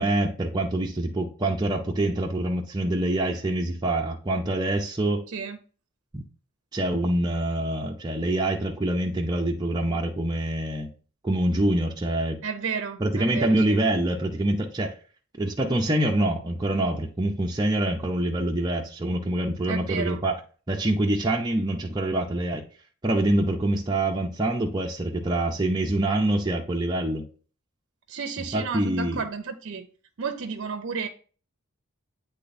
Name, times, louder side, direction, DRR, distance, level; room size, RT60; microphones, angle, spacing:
voice 1, 0.0-5.2 6.1-6.2 6.7-10.9 11.2-12.4 13.0-14.9 15.4-20.4 20.7-22.6 23.0-27.3 28.5-29.2, right 1 dB, 20° right, -1 dB, 0.6 m, -25 dB
voice 2, 5.3-5.6 12.4-13.8 19.7-20.2 28.1-29.9 30.2-31.1, right 5 dB, 55° right, 5 dB, 0.6 m, -32 dB
9.1 x 3.4 x 4.1 m, 0.39 s
head